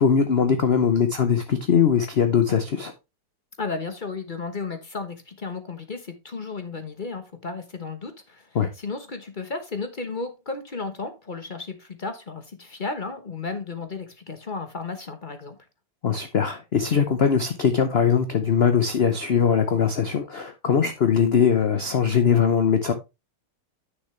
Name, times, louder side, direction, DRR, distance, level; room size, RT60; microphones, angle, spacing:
voice 1, 0.0-2.9 8.5-8.7 16.0-22.9, left 7 dB, 65° left, 0.6 m, -21 dB
voice 2, 3.6-15.6, left 4 dB, 35° left, 0.8 m, -34 dB
9.4 x 6.6 x 3.2 m
omnidirectional pair, 2.2 m